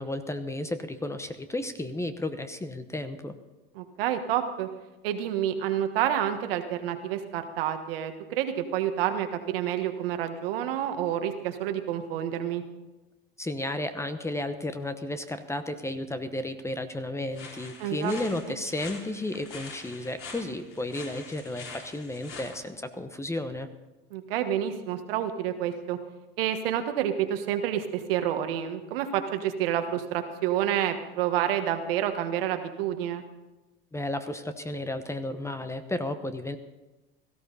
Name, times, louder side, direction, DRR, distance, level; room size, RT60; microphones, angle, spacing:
voice 1, 0.0-3.3 13.4-23.7 33.9-36.6, left 1 dB, 10° left, 10 dB, 0.9 m, -33 dB
voice 2, 3.7-4.7 5.0-12.6 17.8-18.1 18.5-18.6 24.1-26.0 26.4-33.2, right 10 dB, 75° right, 7 dB, 1.5 m, -29 dB
sound 1, 17.3-22.6, left 4 dB, 45° left, 3.8 m, -44 dB
17.5 x 14.0 x 4.1 m, 1.1 s
hypercardioid pair, 100°, 29 cm